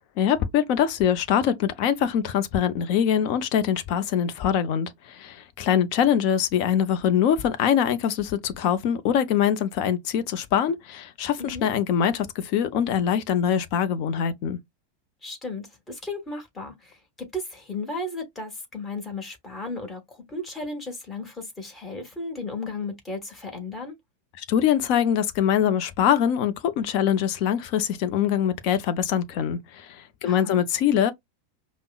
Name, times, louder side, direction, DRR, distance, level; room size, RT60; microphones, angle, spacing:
voice 1, 0.2-14.6 24.4-31.1, left 9 dB, 45° left, 0.5 m, -23 dB
voice 2, 11.4-11.7 15.2-17.0 17.3-23.9 30.2-30.6, left 2 dB, 15° left, 1.4 m, -35 dB
5.2 x 2.1 x 2.3 m
figure-of-eight pair, 90°, 0 cm